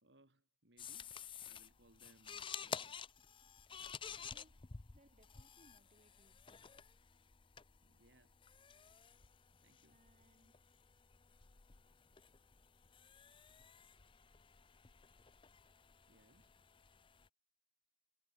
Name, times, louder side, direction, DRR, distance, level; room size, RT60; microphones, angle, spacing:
voice 1, 0.0-3.0 7.8-8.4 9.6-10.0 16.1-16.5, right 1 dB, 75° right, 3.9 m, -69 dB
sound 1, 0.8-17.3, left 6 dB, 30° left, 0.6 m, -52 dB
voice 2, 4.2-6.5 9.9-10.7, right 1 dB, 40° right, 7.6 m, -71 dB
head